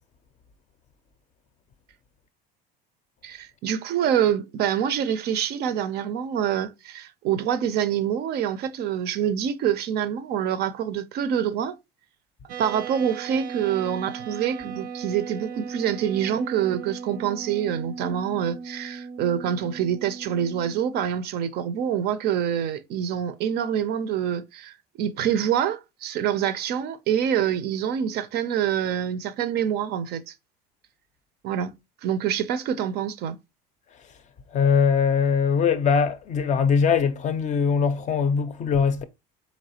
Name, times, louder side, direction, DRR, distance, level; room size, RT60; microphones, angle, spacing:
voice 1, 3.2-11.8 12.6-30.3 31.4-31.7 32.0-33.4, right 9 dB, 55° right, 0.4 m, -26 dB
sound 1, 12.5-21.0, right 6 dB, 90° right, 0.7 m, -37 dB
voice 2, 34.5-39.0, left 6 dB, 35° left, 0.5 m, -21 dB
4.1 x 3.1 x 2.8 m
supercardioid pair, 105°, 20 cm